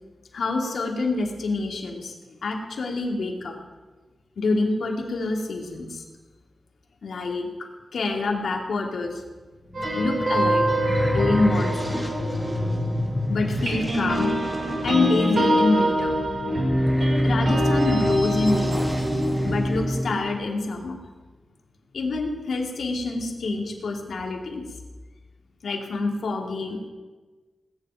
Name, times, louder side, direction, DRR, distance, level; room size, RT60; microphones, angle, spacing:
voice 1, 0.3-2.1 2.4-3.5 4.4-6.0 7.0-7.5 7.9-9.2 9.9-10.7 11.1-12.1 13.3-14.3 14.8-16.2 17.2-18.9 19.4-21.0 21.9-24.6 25.6-26.9, left 3 dB, 85° left, 2 dB, 2.5 m, -26 dB
sound 1, 9.5-20.0, left 1 dB, 5° right, 2.7 m, -30 dB
sound 2, 9.7-13.2 13.6-20.1, equal, 55° right, 5.3 m, -24 dB
18.5 x 7.7 x 9.1 m, 1.3 s
wide cardioid pair, 125°, 0 cm